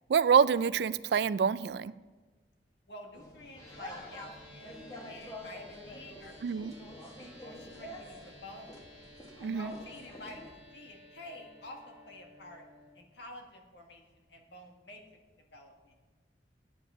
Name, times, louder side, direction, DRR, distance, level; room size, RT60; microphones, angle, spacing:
voice 1, 0.1-1.9 6.4-6.7 9.4-9.7, right 6 dB, 70° right, 18 dB, 0.3 m, -26 dB
voice 2, 2.9-7.1 7.4-8.8 9.5-12.6 12.9-15.0 15.5-15.9, left 1 dB, 85° left, 2 dB, 1.6 m, -49 dB
sound 1, 3.1-10.5, left 1 dB, 20° left, 1.3 m, -48 dB
sound 2, 3.5-12.9, equal, 45° left, 4.0 m, -55 dB
9.4 x 7.8 x 6.1 m, 1.3 s
head